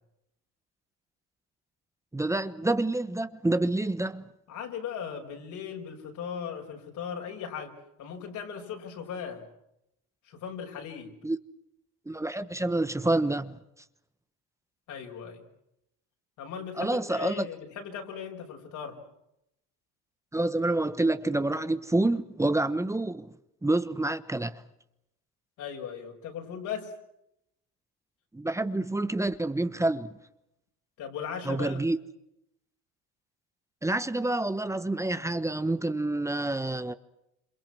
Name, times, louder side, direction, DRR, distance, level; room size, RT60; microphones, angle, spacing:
voice 1, 2.1-4.2 11.2-11.4 12.1-13.6 16.8-17.5 20.3-23.3 23.6-24.6 28.3-30.1 31.4-32.0 33.8-36.9, right 2 dB, 10° right, 1.2 m, -28 dB
voice 2, 4.5-7.7 8.0-9.5 10.2-11.1 14.9-15.5 16.4-19.0 25.6-26.9 31.0-31.8, left 7 dB, 65° left, 6.3 m, -38 dB
28.5 x 27.0 x 6.2 m
supercardioid pair, 95°, 32 cm